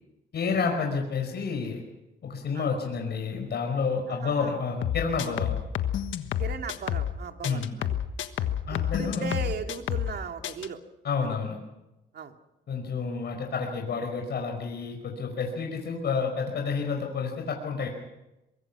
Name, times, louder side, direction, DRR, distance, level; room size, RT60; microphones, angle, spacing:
voice 1, 0.3-1.8 2.2-5.5 7.4-7.7 8.7-9.3 11.0-11.6 12.7-17.9, left 5 dB, 55° left, 2 dB, 5.1 m, -29 dB
voice 2, 4.1-4.6 6.4-7.9 8.4-10.8 12.1-12.4, right 5 dB, 55° right, 5 dB, 2.5 m, -38 dB
sound 1, 4.8-7.2 7.4-10.2 10.4-10.7, left 10 dB, 70° left, 1.4 m, -29 dB
24.0 x 23.0 x 6.1 m, 0.95 s
cardioid pair, 90°, 20 cm